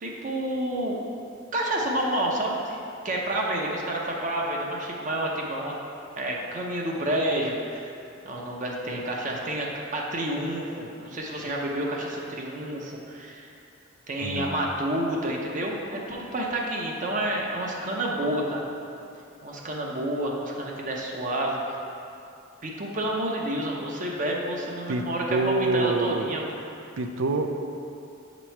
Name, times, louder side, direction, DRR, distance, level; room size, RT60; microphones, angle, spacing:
voice 1, 0.0-1.0 1.5-2.8 3.0-5.7 6.2-7.9 8.2-13.5 14.1-18.7 19.4-21.8 22.6-26.5, right 1 dB, 40° right, -2 dB, 0.6 m, -29 dB
voice 2, 14.2-14.5 24.9-25.0 25.3-26.4 27.0-27.5, right 3 dB, 80° right, 6 dB, 0.4 m, -26 dB
7.0 x 3.0 x 4.4 m, 2.6 s
head